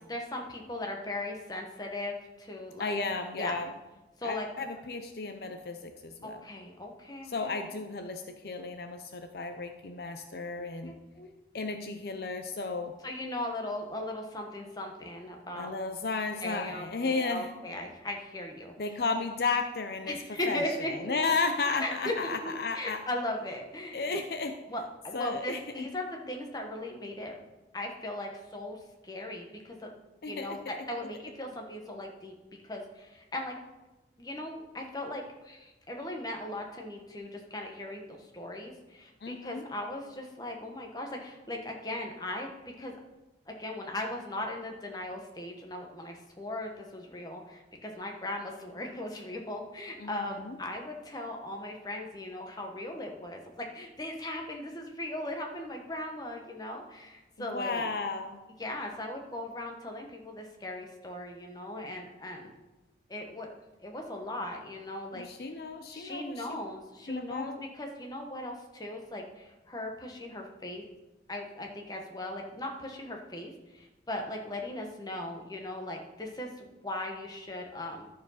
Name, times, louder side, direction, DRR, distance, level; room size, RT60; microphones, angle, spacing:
voice 1, 0.1-3.0 3.4-3.6 4.2-4.5 6.2-7.7 11.2-11.3 13.0-15.7 16.4-18.7 20.1-21.1 21.8-24.2 24.7-27.3 27.7-28.8 29.0-29.9 30.3-32.3 32.6-33.6 34.2-42.9 43.5-57.9 58.6-62.5 63.1-63.5 63.8-65.5 65.9-70.8 71.3-78.1, left 1 dB, 20° left, 2 dB, 1.2 m, -38 dB
voice 2, 2.8-3.7 4.2-6.4 7.3-10.9 11.5-13.0 15.5-17.5 18.8-23.0 23.9-24.6 25.1-25.9 30.2-30.6 39.2-39.7 50.0-50.6 57.4-58.4 65.1-66.6 67.1-67.6, left 4 dB, 60° left, 7 dB, 0.5 m, -34 dB
12.0 x 4.7 x 5.7 m, 1.1 s
head